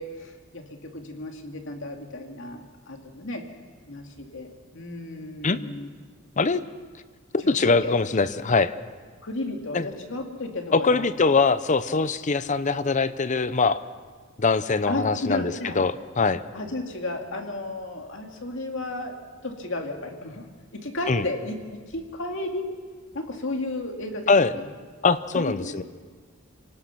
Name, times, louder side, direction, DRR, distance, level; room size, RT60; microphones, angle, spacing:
voice 1, 0.0-3.4 3.9-5.9 7.4-7.9 9.2-11.1 14.9-15.8 16.5-19.1 19.4-20.5 20.7-21.6 21.9-22.7 23.1-24.7 25.3-25.7, left 2 dB, 65° left, 3 dB, 2.4 m, -33 dB
voice 2, 7.3-8.7 9.7-9.9 10.7-13.8 14.4-16.4 21.1-21.2 24.3-24.5 25.0-25.8, left 4 dB, 35° left, 14 dB, 0.7 m, -22 dB
26.5 x 18.5 x 5.9 m, 1.5 s
head